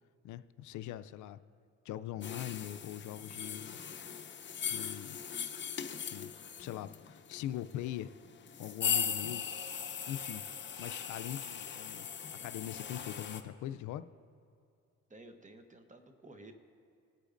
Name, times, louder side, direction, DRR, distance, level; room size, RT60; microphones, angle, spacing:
voice 1, 0.2-1.4 1.9-3.8 4.7-5.2 6.0-6.3 6.6-8.1 8.6-9.5 10.1-10.4 10.8-12.1 12.4-14.1, left 12 dB, 75° left, 13 dB, 0.5 m, -42 dB
sound 1, 2.2-13.4, left 7 dB, 40° left, 0.7 m, -39 dB
voice 2, 15.1-16.5, right 2 dB, 25° right, 6 dB, 1.0 m, -53 dB
19.0 x 8.3 x 2.5 m, 2.4 s
cardioid pair, 90°, 30 cm